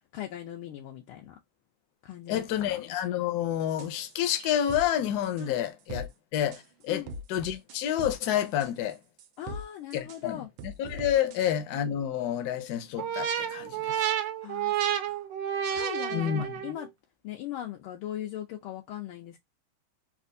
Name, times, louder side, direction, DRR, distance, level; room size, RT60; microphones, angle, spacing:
voice 1, 0.1-1.3 2.0-2.8 5.4-5.6 6.9-7.1 9.4-10.5 11.3-11.4 14.4-14.7 15.1-15.2 15.7-16.9 17.2-19.4, left 12 dB, 85° left, 1.5 m, -39 dB
voice 2, 2.3-7.0 7.3-9.0 9.9-14.1 16.1-16.6, left 10 dB, 65° left, 1.0 m, -29 dB
sound 1, 3.7-4.9 5.2-5.4 5.9-6.1 6.5-6.6 7.1-8.2 8.5-9.6 9.9-10.2 10.6-11.5, right 1 dB, 90° right, 1.5 m, -40 dB
sound 2, 13.0-16.9, right 9 dB, 75° right, 1.2 m, -30 dB
4.4 x 2.4 x 2.6 m
omnidirectional pair, 2.3 m